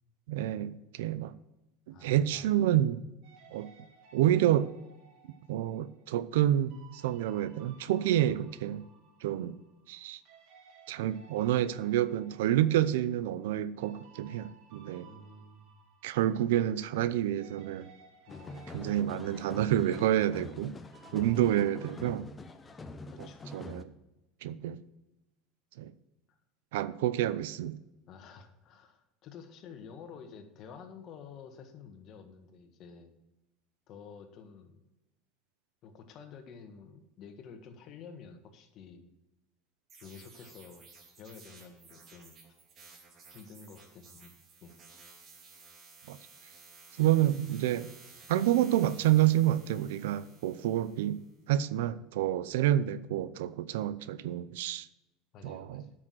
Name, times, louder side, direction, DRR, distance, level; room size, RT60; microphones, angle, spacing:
voice 1, 0.3-1.3 1.9-3.0 3.5-3.7 4.1-4.7 5.5-8.8 9.2-9.6 9.9-10.2 10.9-15.1 16.0-17.9 18.7-20.7 21.1-22.3 23.2-23.3 23.5-23.9 24.4-24.8 25.8-25.9 26.7-27.8 46.1-46.2 47.0-47.9 48.3-51.2 51.5-54.9 55.4-55.8, right 12 dB, 85° right, 16 dB, 0.5 m, -28 dB
voice 2, 1.9-2.6 8.1-8.4 15.0-15.8 18.3-18.6 21.1-21.3 23.0-23.4 26.3-26.4 28.1-33.1 33.9-34.8 35.8-39.1 40.0-40.9 41.2-42.3 43.3-44.3 44.6-44.8 55.3-55.9, left 6 dB, 50° left, 7 dB, 1.5 m, -50 dB
sound 1, 3.2-10.0 10.2-17.1 17.4-21.9, right 5 dB, 65° right, 2.0 m, -59 dB
sound 2, 18.3-23.8, left 2 dB, 20° left, 0.8 m, -45 dB
sound 3, 39.9-51.3, right 4 dB, 40° right, 2.5 m, -55 dB
8.8 x 6.3 x 6.3 m, 0.97 s
supercardioid pair, 110°, 0 cm